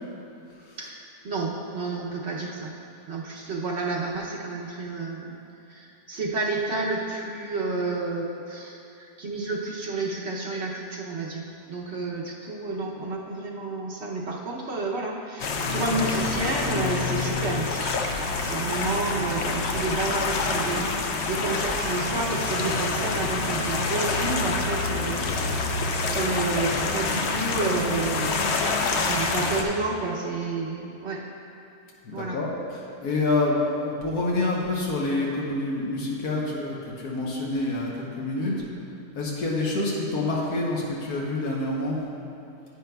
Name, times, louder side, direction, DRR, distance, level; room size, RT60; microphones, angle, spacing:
voice 1, 0.8-2.7 3.1-5.4 5.7-17.9 18.4-28.6 28.9-31.2 32.1-32.4 38.4-38.6, right 3 dB, 55° right, -2 dB, 0.9 m, -30 dB
sound 1, 15.4-29.6, left 3 dB, 60° left, 0.7 m, -27 dB
voice 2, 32.0-38.5 39.1-42.0, left 2 dB, 80° left, -3 dB, 1.5 m, -27 dB
9.7 x 9.1 x 2.3 m, 2.7 s
omnidirectional pair, 1.6 m